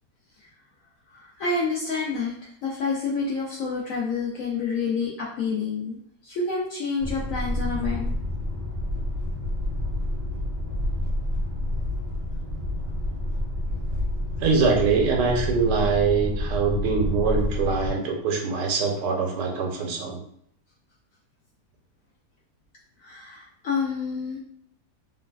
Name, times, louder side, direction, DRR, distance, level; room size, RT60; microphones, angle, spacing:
voice 1, 1.1-8.1 23.0-24.4, left 4 dB, 70° left, -3 dB, 0.8 m, -28 dB
sound 1, 7.0-17.9, left 1 dB, 45° right, 1.1 m, -29 dB
voice 2, 14.4-20.2, right 5 dB, 80° right, 0 dB, 1.2 m, -23 dB
3.1 x 2.3 x 2.2 m, 0.67 s
omnidirectional pair, 1.8 m